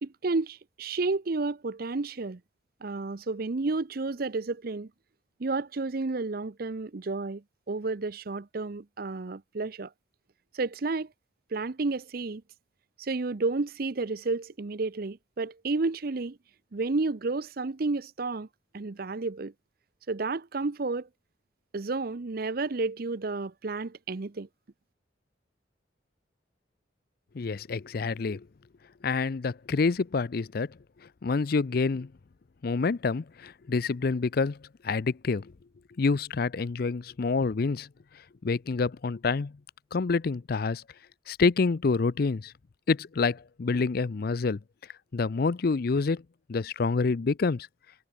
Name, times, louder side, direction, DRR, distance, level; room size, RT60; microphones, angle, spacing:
voice 1, 0.0-2.4 2.8-4.9 5.4-9.9 10.5-11.1 11.5-12.4 13.0-16.4 16.7-18.5 18.7-19.5 20.1-21.1 21.7-24.5, right 3 dB, 50° right, 0.7 m, -31 dB
voice 2, 27.3-28.4 29.0-30.7 31.2-32.1 32.6-34.6 34.8-35.5 36.0-37.9 38.4-39.5 39.9-40.8 41.3-42.5 42.9-44.6 45.1-46.2 46.5-47.7, left 4 dB, 55° left, 0.5 m, -27 dB
head